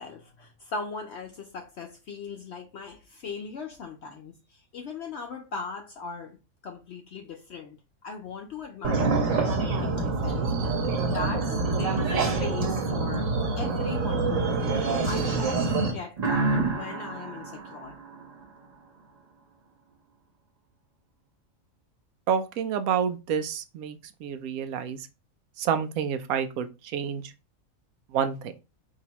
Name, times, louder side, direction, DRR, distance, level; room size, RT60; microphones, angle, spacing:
voice 1, 0.0-6.4 6.6-7.8 8.0-10.7 11.1-17.9, left 4 dB, 60° left, 0.8 m, -39 dB
sound 1, 8.8-15.9, right 3 dB, 70° right, 1.3 m, -26 dB
sound 2, 16.2-18.8, right 3 dB, 40° right, 0.7 m, -29 dB
voice 2, 22.3-25.1 25.6-27.3 28.1-28.5, right 8 dB, 90° right, 1.0 m, -29 dB
4.8 x 2.7 x 2.9 m
omnidirectional pair, 1.5 m